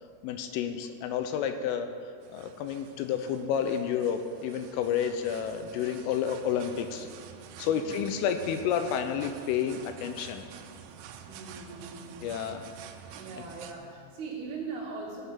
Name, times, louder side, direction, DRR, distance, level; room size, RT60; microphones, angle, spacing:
voice 1, 0.2-1.9 2.3-7.1 7.6-10.5 12.2-12.6, left 8 dB, 90° left, 8 dB, 3.3 m, -30 dB
sound 1, 2.2-13.7, right 8 dB, 85° right, 2.6 m, -48 dB
voice 2, 11.3-12.3 13.1-15.2, right 4 dB, 55° right, -7 dB, 4.3 m, -40 dB
16.5 x 10.0 x 3.7 m, 2.1 s
omnidirectional pair, 5.7 m